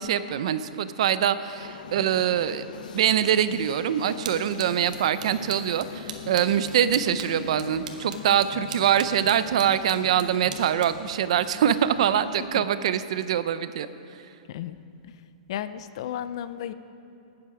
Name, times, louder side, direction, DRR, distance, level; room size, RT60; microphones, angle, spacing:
voice 1, 0.0-2.7 2.9-13.9, right 9 dB, 45° right, 13 dB, 0.5 m, -24 dB
sound 1, 1.6-12.5, left 7 dB, 70° left, 0.8 m, -42 dB
sound 2, 3.8-12.3, right 6 dB, 65° right, 1.4 m, -44 dB
voice 2, 14.5-15.1 15.5-16.7, left 10 dB, 40° left, 13 dB, 0.4 m, -34 dB
19.5 x 8.6 x 4.9 m, 2.6 s
hypercardioid pair, 180°, 4 cm